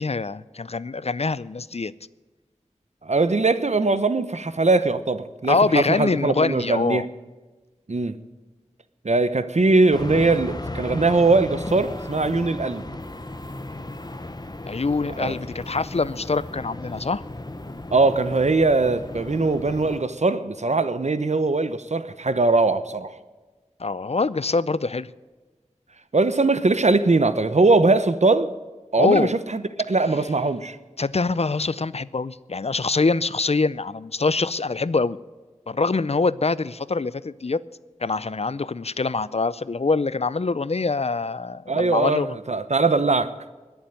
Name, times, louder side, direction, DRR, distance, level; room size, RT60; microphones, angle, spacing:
voice 1, 0.0-1.9 5.5-7.0 14.7-17.2 23.8-25.1 29.0-29.3 31.0-35.2 35.7-37.6 38.0-42.4, left 3 dB, 55° left, 0.5 m, -24 dB
voice 2, 3.0-7.1 7.9-8.2 9.0-12.8 15.2-15.3 17.9-23.1 26.1-28.5 28.9-29.6 29.9-30.8 41.7-43.3, right 3 dB, 65° right, 1.0 m, -21 dB
sound 1, 9.9-20.0, left 2 dB, 35° left, 1.1 m, -35 dB
20.5 x 7.2 x 9.2 m
wide cardioid pair, 50°, 12 cm